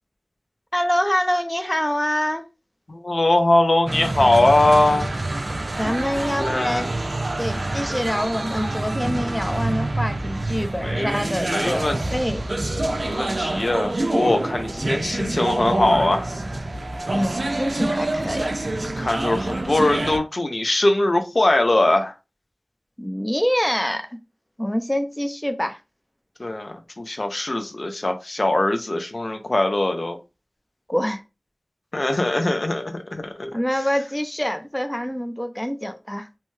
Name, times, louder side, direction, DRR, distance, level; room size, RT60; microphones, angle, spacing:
voice 1, 0.7-2.4 5.8-6.9 7.4-11.8 12.1-12.4 17.1-18.5 23.0-24.1 24.6-25.8 30.9-31.2 33.5-36.3, equal, 15° left, 0.5 m, -25 dB
voice 2, 2.9-5.1 6.4-6.9 10.8-11.2 11.4-12.0 13.0-16.2 18.9-22.1 26.4-30.2 31.9-33.5, left 2 dB, 70° left, 0.5 m, -21 dB
sound 1, 3.9-20.2, right 2 dB, 70° right, 0.3 m, -26 dB
2.7 x 2.2 x 3.1 m
wide cardioid pair, 40°, 0 cm